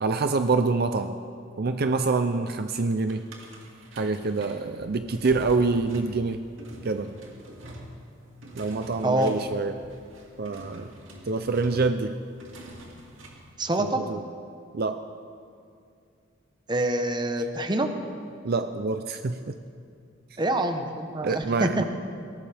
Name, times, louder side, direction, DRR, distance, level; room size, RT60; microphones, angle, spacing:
voice 1, 0.0-1.2 1.6-3.2 3.9-6.4 6.8-7.1 8.5-9.7 10.4-10.9 11.3-12.1 13.8-14.2 14.7-15.0 18.4-19.5 21.2-21.8, right 3 dB, 50° right, 8 dB, 0.5 m, -26 dB
sound 1, 3.1-13.5, right 1 dB, 75° right, 2.6 m, -46 dB
voice 2, 13.6-14.0 16.7-17.9 20.4-21.8, right 1 dB, 20° right, 6 dB, 1.0 m, -26 dB
22.5 x 18.0 x 3.5 m, 2.4 s
head